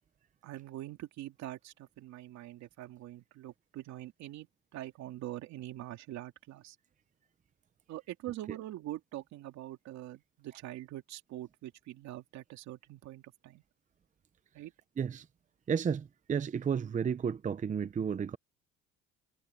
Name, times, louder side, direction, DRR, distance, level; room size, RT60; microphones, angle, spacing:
voice 1, 0.4-6.8 7.9-13.6 14.5-14.7, right 14 dB, 70° right, 2.7 m, -44 dB
voice 2, 15.7-18.4, right 7 dB, 25° right, 0.7 m, -32 dB
cardioid pair, 105°, 29 cm